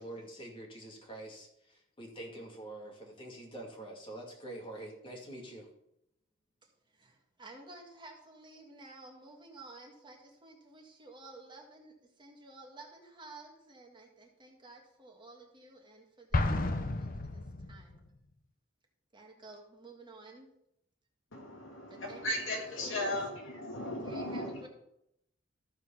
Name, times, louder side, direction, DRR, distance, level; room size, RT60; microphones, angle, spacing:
voice 1, 0.0-5.7, right 1 dB, 25° left, 2.4 m, -46 dB
voice 2, 6.9-17.4 17.7-18.0 19.1-20.5 21.9-23.2 24.0-24.7, right 2 dB, 25° right, 1.6 m, -52 dB
Explosion, 16.3-18.1, left 2 dB, 45° left, 0.8 m, -32 dB
voice 3, 21.3-24.7, left 1 dB, 75° left, 2.7 m, -36 dB
14.0 x 4.8 x 5.8 m
head